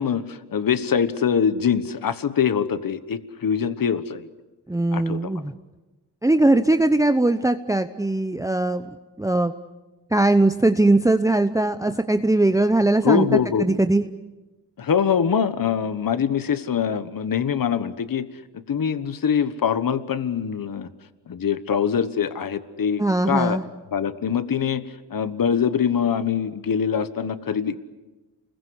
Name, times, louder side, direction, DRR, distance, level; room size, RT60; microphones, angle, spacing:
voice 1, 0.0-4.3 4.9-5.3 13.0-13.8 14.8-18.3 18.7-20.9 21.3-23.6 23.9-27.9, left 7 dB, 55° left, 13 dB, 1.3 m, -23 dB
voice 2, 4.7-5.5 6.2-8.9 9.2-9.5 10.1-13.3 13.6-14.0 23.0-23.6, right 2 dB, 10° right, 9 dB, 0.8 m, -20 dB
29.5 x 21.5 x 8.2 m, 1.1 s
wide cardioid pair, 105°, 41 cm